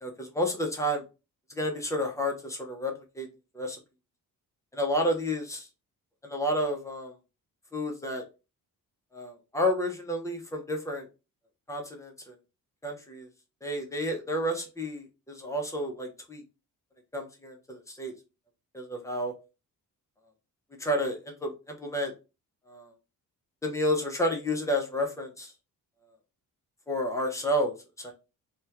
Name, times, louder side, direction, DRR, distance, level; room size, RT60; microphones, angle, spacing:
voice 1, 0.0-1.0 1.5-3.3 3.5-3.8 4.7-5.7 6.2-7.1 7.7-8.3 9.1-11.1 11.7-12.3 12.8-13.3 13.6-16.4 17.1-18.1 18.7-19.3 20.8-22.1 22.7-22.9 23.6-25.5 26.9-28.1, equal, 10° left, 1 dB, 0.4 m, -30 dB
2.9 x 2.1 x 2.2 m, 0.29 s
wide cardioid pair, 175°, 35 cm